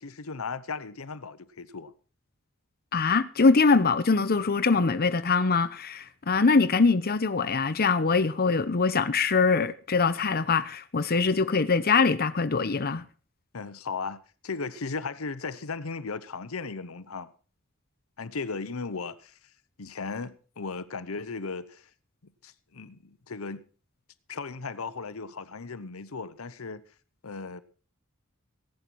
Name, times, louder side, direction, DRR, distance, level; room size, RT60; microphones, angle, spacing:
voice 1, 0.0-1.9 13.5-17.3 18.2-19.4 19.8-21.9 22.2-23.6 24.3-26.8 27.2-27.6, left 4 dB, 80° left, 0.9 m, -36 dB
voice 2, 2.9-13.0, left 4 dB, 45° left, 0.8 m, -23 dB
16.5 x 11.0 x 4.6 m
head